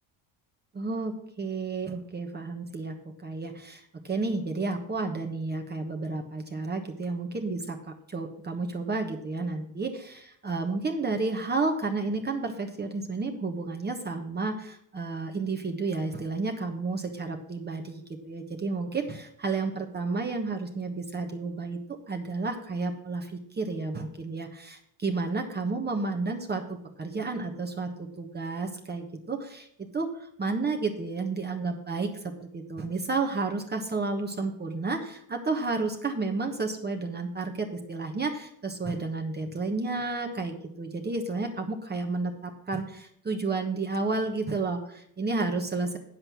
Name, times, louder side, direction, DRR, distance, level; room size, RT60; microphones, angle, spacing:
voice 1, 0.7-2.9 3.2-7.8 8.1-26.6 27.0-32.1 32.4-46.0, right 3 dB, 25° right, 3 dB, 1.2 m, -31 dB
8.8 x 7.6 x 6.1 m, 0.71 s
cardioid pair, 105°, 41 cm